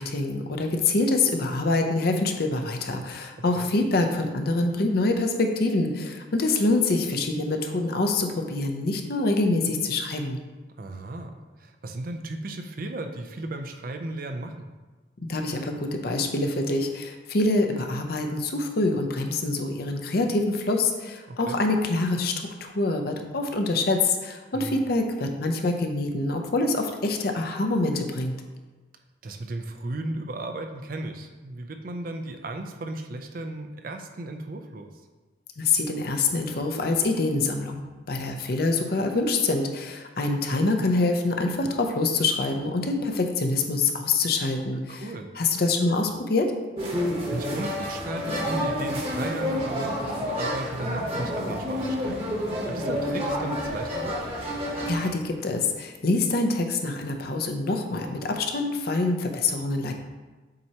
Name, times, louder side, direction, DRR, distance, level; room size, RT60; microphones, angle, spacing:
voice 1, 0.0-10.4 15.3-22.3 22.6-28.3 35.6-45.0 45.4-46.5 54.9-59.9, left 2 dB, 55° left, 4 dB, 0.6 m, -25 dB
voice 2, 3.4-3.7 10.7-14.7 21.3-21.6 24.5-24.8 29.2-34.9 44.9-45.3 47.3-52.2 52.7-54.2, right 2 dB, 50° right, 5 dB, 0.5 m, -35 dB
sound 1, 46.8-55.1, equal, 30° right, 1.0 m, -29 dB
7.6 x 4.3 x 2.9 m, 1.3 s
head